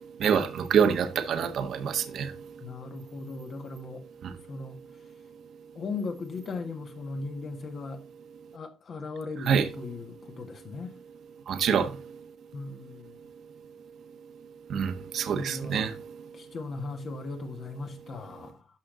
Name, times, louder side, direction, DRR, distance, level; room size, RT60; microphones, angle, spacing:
voice 1, 0.2-2.3 9.4-9.7 11.5-11.9 14.7-15.9, right 7 dB, 55° right, 1.4 m, -26 dB
voice 2, 2.6-4.0 4.5-4.8 5.7-8.0 8.5-10.9 12.5-13.1 15.2-15.9 16.3-18.7, left 3 dB, 40° left, 1.8 m, -38 dB
12.5 x 5.4 x 4.0 m
cardioid pair, 140°, 0 cm